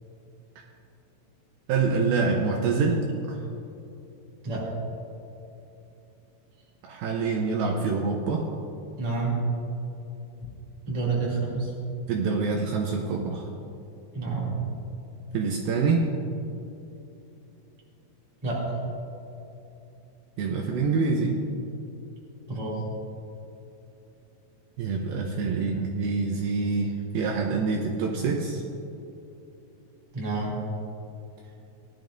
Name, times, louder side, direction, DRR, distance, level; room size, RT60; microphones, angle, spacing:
voice 1, 1.7-3.0 3.3-3.4 6.8-8.5 12.1-13.5 15.3-16.1 20.4-21.4 24.8-28.6, right 4 dB, 75° right, 1 dB, 2.3 m, -26 dB
voice 2, 9.0-9.5 10.9-11.7 14.1-14.6 18.4-18.8 22.5-22.8 30.1-30.6, right 3 dB, 15° right, -5 dB, 1.4 m, -28 dB
18.5 x 11.5 x 2.5 m, 2.9 s
omnidirectional pair, 4.8 m